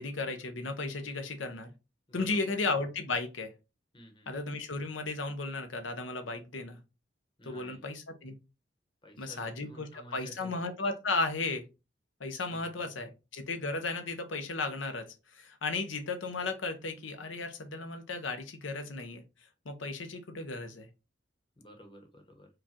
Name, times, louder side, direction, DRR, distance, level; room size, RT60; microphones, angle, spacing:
voice 1, 0.0-1.7 2.1-3.5 4.3-6.8 7.4-8.4 9.2-11.6 12.2-19.2 19.6-20.9, left 3 dB, 85° left, 7 dB, 0.9 m, -35 dB
voice 2, 2.1-2.5 3.9-4.3 7.4-7.8 9.0-10.5 12.5-13.1 21.6-22.5, equal, 25° left, 3 dB, 1.1 m, -52 dB
4.9 x 2.5 x 4.3 m, 0.28 s
head